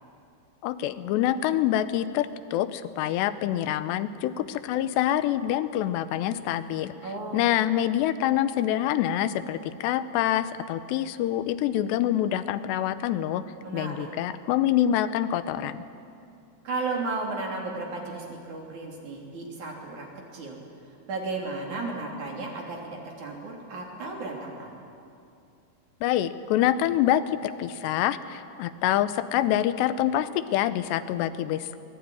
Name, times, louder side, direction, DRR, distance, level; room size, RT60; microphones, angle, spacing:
voice 1, 0.6-6.9 7.3-13.4 13.7-15.8 26.0-31.8, left 12 dB, 85° left, 13 dB, 3.0 m, -26 dB
voice 2, 7.0-7.5 13.6-14.3 16.6-20.1 20.3-20.6 21.1-24.7, right 3 dB, 50° right, 0 dB, 4.3 m, -34 dB
24.0 x 20.0 x 9.7 m, 2.6 s
omnidirectional pair, 4.8 m